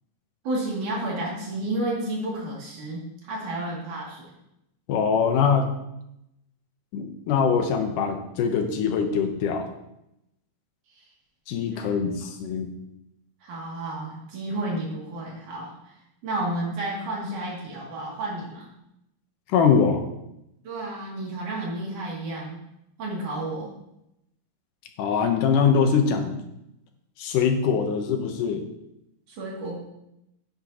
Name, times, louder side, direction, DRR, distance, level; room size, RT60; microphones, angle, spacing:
voice 1, 0.4-4.3 11.0-11.1 11.7-11.9 13.4-15.7 16.2-18.7 20.6-22.6 23.0-23.7 29.3-29.8, right 1 dB, 65° right, -4 dB, 3.9 m, -31 dB
voice 2, 4.9-5.7 6.9-9.7 11.5-12.7 19.5-20.1 25.0-26.4 27.2-28.6, left 6 dB, 80° left, 5 dB, 2.4 m, -23 dB
10.0 x 9.6 x 2.9 m, 0.84 s
omnidirectional pair, 3.8 m